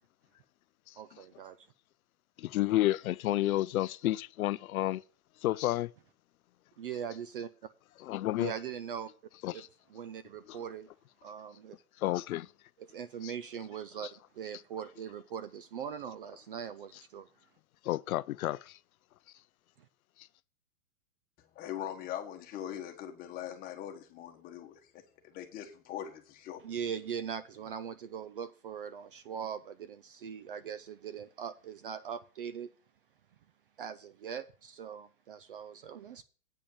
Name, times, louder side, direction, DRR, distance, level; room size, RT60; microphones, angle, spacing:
voice 1, 1.0-1.7 6.8-7.5 8.4-9.1 9.5-9.6 9.9-10.9 11.2-11.8 12.8-17.3 26.6-32.7 33.8-36.2, right 8 dB, 40° right, 0.4 m, -41 dB
voice 2, 2.4-5.0 5.4-5.9 8.0-8.5 9.4-9.7 10.5-10.6 12.0-12.5 13.2-13.3 14.0-14.1 17.8-18.8 20.2-20.3, left 15 dB, 70° left, 0.5 m, -31 dB
voice 3, 21.5-24.8 25.2-26.6, left 10 dB, 20° left, 1.2 m, -41 dB
8.6 x 5.4 x 7.1 m
hypercardioid pair, 155°, 43 cm